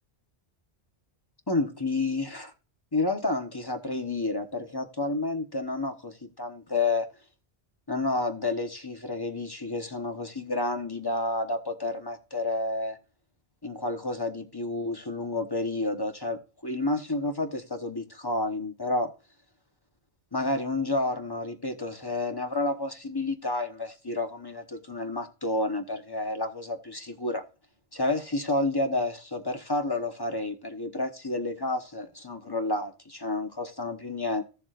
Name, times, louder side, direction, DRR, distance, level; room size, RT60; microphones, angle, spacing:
voice 1, 1.5-2.5 2.9-7.1 7.9-13.0 13.6-19.1 20.3-27.4 27.9-34.4, left 2 dB, 20° left, 1.1 m, -30 dB
15.0 x 7.1 x 2.5 m
omnidirectional pair, 1.2 m